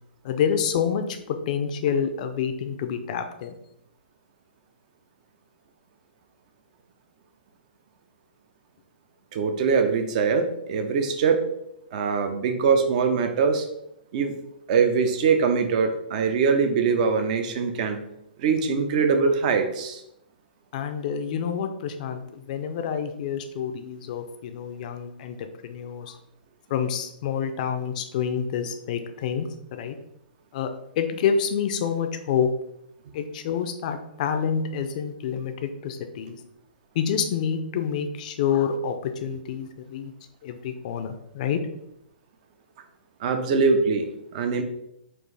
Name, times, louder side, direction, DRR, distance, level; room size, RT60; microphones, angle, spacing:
voice 1, 0.2-3.5 20.7-25.4 25.6-26.2 26.7-30.0 30.5-30.7 31.0-32.5 33.1-36.4 36.9-40.1 40.4-41.6, left 7 dB, 50° left, 7 dB, 0.5 m, -28 dB
voice 2, 9.3-11.4 11.9-13.7 14.1-14.3 14.7-18.0 18.4-20.0 43.2-44.6, right 5 dB, 45° right, 6 dB, 0.6 m, -22 dB
4.3 x 2.5 x 3.3 m, 0.80 s
hypercardioid pair, 125°, 6 cm